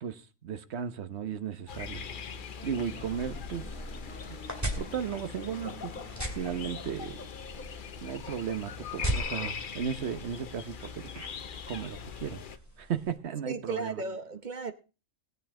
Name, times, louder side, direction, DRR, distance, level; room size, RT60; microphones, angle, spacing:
voice 1, 0.0-2.1 2.6-3.7 4.3-4.4 4.8-5.9 6.4-7.3 8.0-11.1 11.7-12.4 12.8-14.0, right 8 dB, 60° right, 1.2 m, -35 dB
sound 1, 1.7-12.6, left 6 dB, 45° left, 0.8 m, -41 dB
sound 2, 1.8-11.6, left 1 dB, 10° left, 2.2 m, -54 dB
sound 3, 3.0-13.2, right 1 dB, 10° right, 2.3 m, -40 dB
voice 2, 13.5-14.7, right 4 dB, 40° right, 0.9 m, -35 dB
20.0 x 8.2 x 3.7 m
omnidirectional pair, 1.4 m